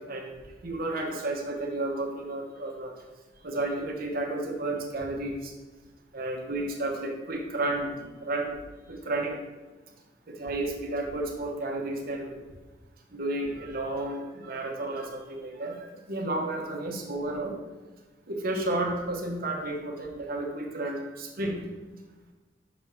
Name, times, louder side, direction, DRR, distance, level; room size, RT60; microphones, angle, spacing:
voice 1, 0.6-2.9 3.4-5.5 6.1-8.6 8.9-9.4 10.3-12.4 13.1-17.5 18.3-21.6, right 2 dB, 55° right, 1 dB, 1.0 m, -32 dB
6.0 x 3.6 x 5.6 m, 1.2 s
head